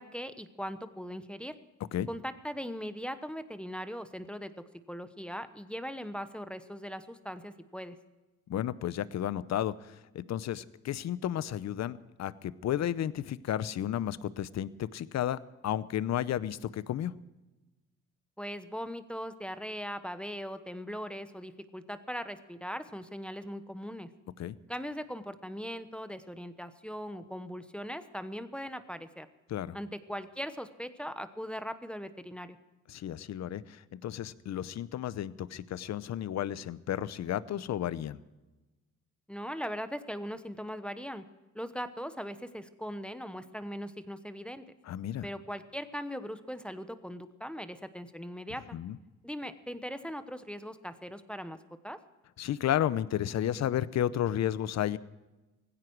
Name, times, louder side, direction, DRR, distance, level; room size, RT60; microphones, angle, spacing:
voice 1, 0.0-1.6 2.1-4.5 4.9-8.0 18.4-24.1 24.7-29.3 29.7-32.6 39.3-41.2 41.5-44.6 45.2-48.8 49.2-51.6 51.8-52.0, equal, 5° left, 10 dB, 1.0 m, -39 dB
voice 2, 8.5-17.2 24.4-24.6 29.5-29.8 32.9-38.2 44.8-45.3 48.7-49.0 52.4-55.0, left 11 dB, 60° left, 17 dB, 0.8 m, -32 dB
18.0 x 16.0 x 4.7 m, 1.1 s
cardioid pair, 90°, 30 cm